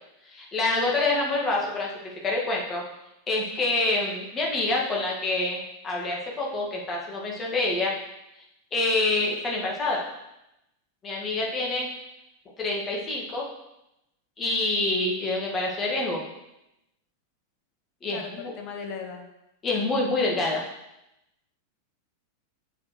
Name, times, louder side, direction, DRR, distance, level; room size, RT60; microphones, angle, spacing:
voice 1, 0.3-2.8 3.3-7.9 8.7-10.0 11.0-11.9 12.6-13.4 14.4-16.2 18.0-18.5 19.6-20.6, left 2 dB, 25° left, -2 dB, 1.9 m, -26 dB
voice 2, 18.1-19.2, left 6 dB, 45° left, 4 dB, 1.2 m, -37 dB
7.2 x 7.0 x 3.2 m, 0.88 s
figure-of-eight pair, 90°, 0 cm